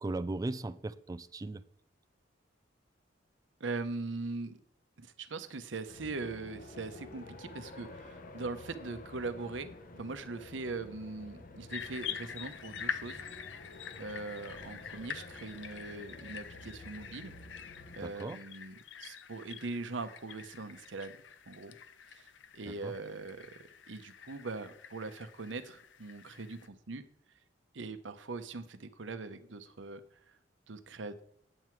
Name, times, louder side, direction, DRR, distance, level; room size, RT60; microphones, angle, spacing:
voice 1, 0.0-1.7 18.0-18.4 22.7-22.9, right 2 dB, 20° right, 15 dB, 0.3 m, -38 dB
voice 2, 3.6-4.6 5.0-13.2 14.0-17.3 18.0-18.7 19.0-21.1 21.5-21.7 22.1-22.3 22.5-27.0 27.7-30.0 30.7-31.2, right 3 dB, 80° right, 11 dB, 0.8 m, -41 dB
sound 1, 5.9-18.0, left 2 dB, 50° left, 0.9 m, -50 dB
sound 2, 11.7-26.7, left 8 dB, 75° left, 0.7 m, -46 dB
9.0 x 7.6 x 4.6 m, 0.67 s
head